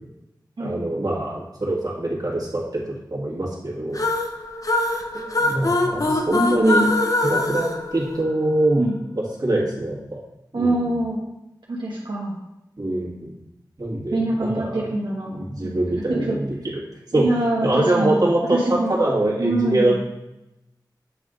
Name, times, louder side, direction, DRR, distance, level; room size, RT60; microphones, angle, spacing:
voice 1, 0.6-2.8 3.1-4.1 5.1-6.9 7.2-8.9 9.2-10.2 10.5-10.8 12.8-13.3 13.8-14.8 15.3-16.8 17.1-17.2 17.6-20.0, right 1 dB, 55° right, -4 dB, 1.9 m, -23 dB
sound 1, 3.9-8.7, left 2 dB, 50° left, 0.7 m, -23 dB
voice 2, 10.5-11.2 11.7-12.4 14.1-15.8 16.1-16.4 17.1-18.1 18.5-18.9 19.4-20.0, right 1 dB, 85° right, -5 dB, 1.1 m, -24 dB
8.5 x 3.6 x 3.8 m, 0.91 s
wide cardioid pair, 70°, 8 cm